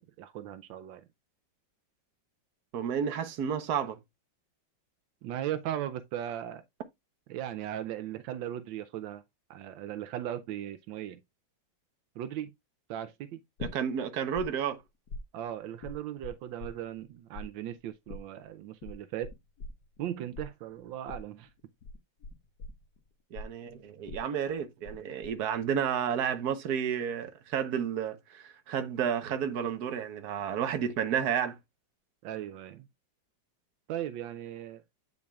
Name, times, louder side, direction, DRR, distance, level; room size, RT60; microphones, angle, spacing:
voice 1, 0.2-1.0 5.2-6.6 7.3-9.2 9.5-11.2 12.2-12.5 12.9-13.4 15.3-19.3 20.0-21.5 32.2-32.9 33.9-34.8, right 11 dB, 80° right, 1.4 m, -37 dB
voice 2, 2.7-4.0 13.6-14.8 23.3-31.6, right 8 dB, 60° right, 1.4 m, -31 dB
sound 1, 13.6-14.5 14.7-17.1 17.3-25.0 25.2-25.8, left 3 dB, 60° left, 1.8 m, -43 dB
8.4 x 6.2 x 2.3 m
omnidirectional pair, 2.1 m